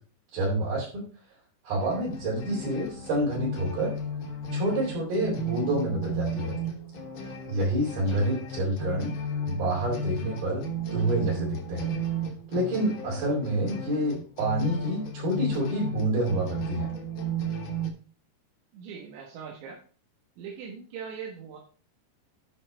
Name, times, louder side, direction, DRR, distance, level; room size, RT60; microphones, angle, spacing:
voice 1, 0.3-1.0 1.6-4.0 4.5-6.6 7.2-9.1 9.5-10.6 10.9-11.9 12.5-16.9, right 1 dB, 55° right, -6 dB, 5.7 m, -28 dB
sound 1, 1.8-17.9, right 2 dB, 85° left, 1.0 m, -34 dB
voice 2, 18.7-19.8 20.4-21.6, right 6 dB, 90° right, 0 dB, 3.9 m, -41 dB
11.0 x 5.9 x 4.4 m, 0.39 s
omnidirectional pair, 5.0 m